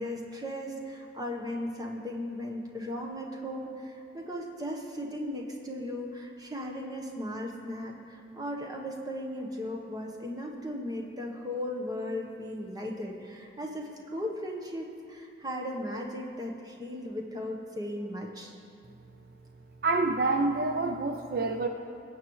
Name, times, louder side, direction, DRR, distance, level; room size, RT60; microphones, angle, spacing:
voice 1, 0.0-18.5, left 1 dB, 20° right, 1 dB, 1.0 m, -37 dB
voice 2, 19.8-21.7, right 3 dB, 55° right, 5 dB, 0.5 m, -27 dB
20.0 x 8.3 x 3.1 m, 2.5 s
head